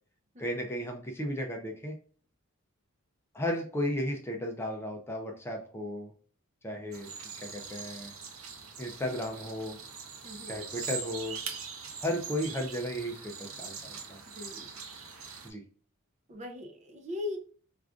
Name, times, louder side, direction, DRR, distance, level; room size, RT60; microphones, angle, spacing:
voice 1, 0.4-1.9 3.3-6.1 6.6-7.1 7.4-8.1 8.8-9.8 10.5-11.4 12.0-14.2 15.4-15.6, equal, 10° left, 2 dB, 0.4 m, -34 dB
sound 1, 6.9-15.5, right 5 dB, 75° right, 0.7 m, -42 dB
voice 2, 10.2-10.6 14.3-14.7 15.1-15.4 16.3-17.4, left 3 dB, 35° right, 2 dB, 0.6 m, -40 dB
4.7 x 2.4 x 2.3 m, 0.44 s
head